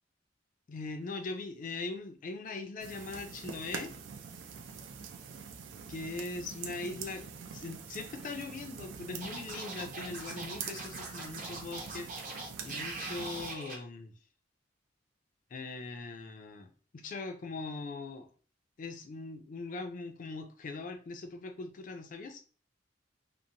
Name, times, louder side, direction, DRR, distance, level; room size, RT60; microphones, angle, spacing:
voice 1, 0.7-3.9 5.9-7.3 7.5-14.1 15.5-18.3 18.8-22.4, left 3 dB, 45° left, 6 dB, 0.4 m, -41 dB
sound 1, 2.8-13.5, right 6 dB, 80° right, 0.4 m, -45 dB
Scratching (performance technique), 9.2-13.7, right 3 dB, 45° right, 0.7 m, -42 dB
2.8 x 2.0 x 2.5 m, 0.39 s
head